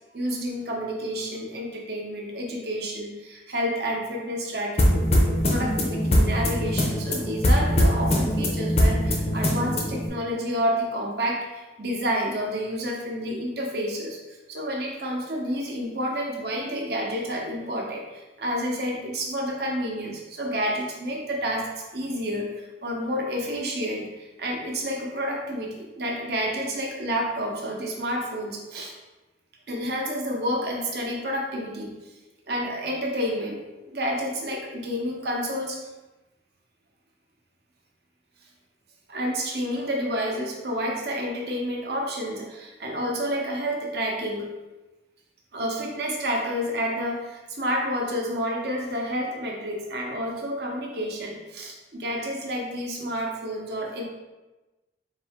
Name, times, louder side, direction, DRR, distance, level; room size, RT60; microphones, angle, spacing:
voice 1, 0.1-28.9 29.7-31.9 32.5-33.6 33.9-35.8 39.1-44.5 45.5-54.0, equal, 55° right, 0 dB, 0.7 m, -29 dB
sound 1, 4.8-10.1, equal, 35° left, 0.5 m, -22 dB
4.0 x 2.6 x 3.5 m, 1.1 s
head